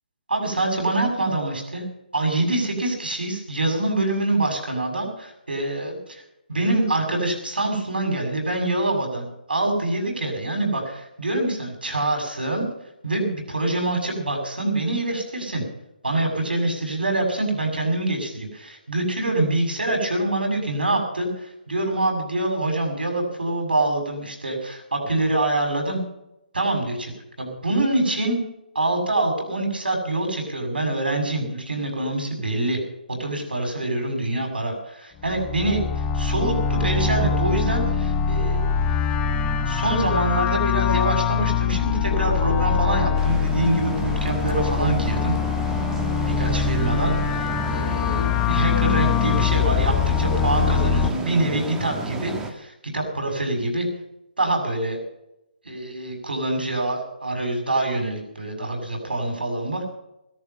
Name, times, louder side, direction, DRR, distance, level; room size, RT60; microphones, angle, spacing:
voice 1, 0.3-1.8 2.1-6.2 6.5-12.7 13.0-15.6 16.0-26.0 26.5-27.1 27.4-28.4 28.8-32.8 33.1-35.8 36.1-38.7 39.7-45.3 46.3-53.9 54.4-55.0 55.7-59.9, right 2 dB, 85° right, 3 dB, 7.0 m, -25 dB
sound 1, 35.2-51.1, left 7 dB, 15° left, 1.0 m, -23 dB
sound 2, 43.2-52.5, right 3 dB, 10° right, 1.7 m, -32 dB
15.0 x 13.5 x 5.7 m, 0.85 s
figure-of-eight pair, 145°, 5 cm